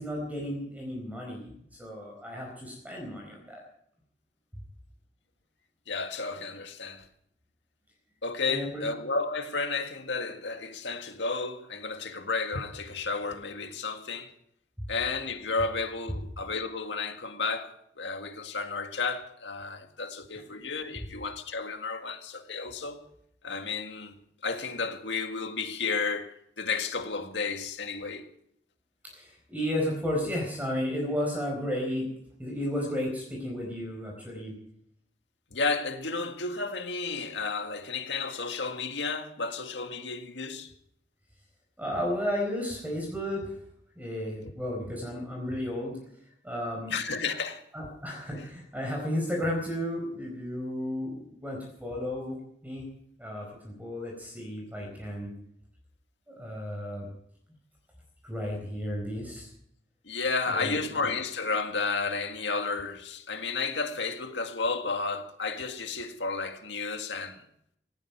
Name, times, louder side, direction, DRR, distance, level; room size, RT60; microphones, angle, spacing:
voice 1, 0.0-3.6 8.4-8.8 14.8-14.9 29.0-32.1 32.4-34.5 41.8-43.5 44.0-46.0 46.4-46.9 47.7-52.4 52.6-52.9 53.2-55.3 56.3-57.1 58.2-59.5 60.5-60.8, left 1 dB, 10° right, 4.5 m, -33 dB
voice 2, 5.9-7.1 8.2-14.3 14.9-23.0 23.4-24.2 24.4-28.2 35.5-40.7 46.9-47.6 60.0-67.5, left 4 dB, 85° left, 1.9 m, -32 dB
18.5 x 16.5 x 4.6 m
head